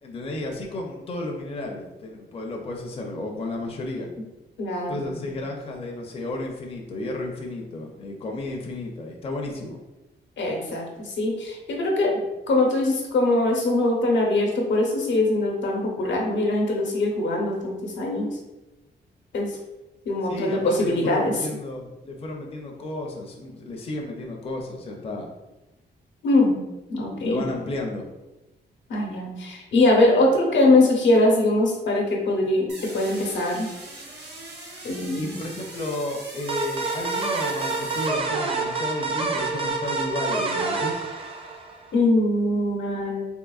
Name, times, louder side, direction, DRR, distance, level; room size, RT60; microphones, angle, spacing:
voice 1, 0.0-4.1 4.9-9.8 20.3-25.3 27.2-28.1 35.2-41.0, left 2 dB, 30° left, 1 dB, 0.5 m, -32 dB
voice 2, 4.6-5.3 10.4-12.2 12.5-18.3 19.3-19.6 20.1-21.4 26.2-26.6 26.9-27.4 28.9-33.7 34.8-35.3 41.9-43.3, left 2 dB, 85° left, 0 dB, 0.8 m, -22 dB
sound 1, 32.7-38.9, right 2 dB, 65° right, 1.0 m, -41 dB
sound 2, 36.5-41.9, right 3 dB, 30° right, 0.5 m, -27 dB
3.6 x 2.8 x 2.3 m, 1.0 s
wide cardioid pair, 130°, 18 cm